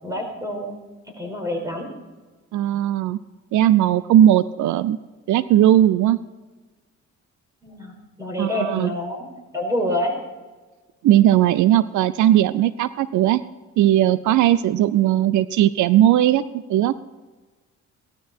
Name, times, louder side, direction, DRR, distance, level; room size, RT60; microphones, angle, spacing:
voice 1, 0.0-0.8 1.2-1.9 7.6-9.2 9.5-10.1, left 1 dB, 10° right, 2 dB, 5.3 m, -27 dB
voice 2, 2.5-3.2 3.5-5.0 5.3-6.2 8.4-8.9 11.0-13.4 13.8-16.4 16.7-16.9, right 12 dB, 80° right, 16 dB, 0.6 m, -17 dB
17.5 x 13.0 x 4.5 m, 1.3 s
cardioid pair, 90°, 30 cm